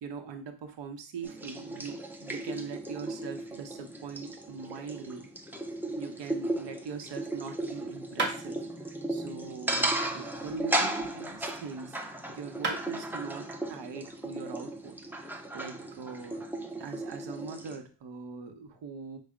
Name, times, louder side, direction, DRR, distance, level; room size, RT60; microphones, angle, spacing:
voice 1, 0.0-5.3 6.0-12.0 12.3-16.5 16.8-19.2, right 5 dB, 90° right, 6 dB, 0.9 m, -42 dB
sound 1, 1.2-17.8, right 1 dB, 5° right, 0.3 m, -36 dB
sound 2, 8.2-8.4 10.3-11.7 12.3-12.4 12.6-12.8, right 3 dB, 25° right, 1.0 m, -35 dB
5.4 x 2.1 x 4.8 m, 0.36 s
wide cardioid pair, 175°, 42 cm